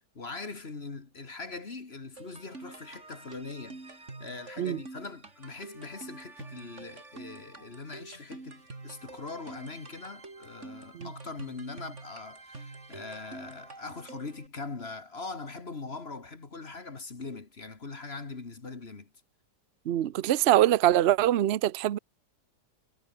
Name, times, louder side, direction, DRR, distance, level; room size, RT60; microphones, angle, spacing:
voice 1, 0.2-19.1, left 3 dB, 35° left, 2.1 m, -41 dB
sound 1, 2.2-14.5, right 3 dB, 40° right, 3.7 m, -47 dB
voice 2, 19.9-22.0, right 12 dB, 55° right, 0.7 m, -23 dB
omnidirectional pair, 1.9 m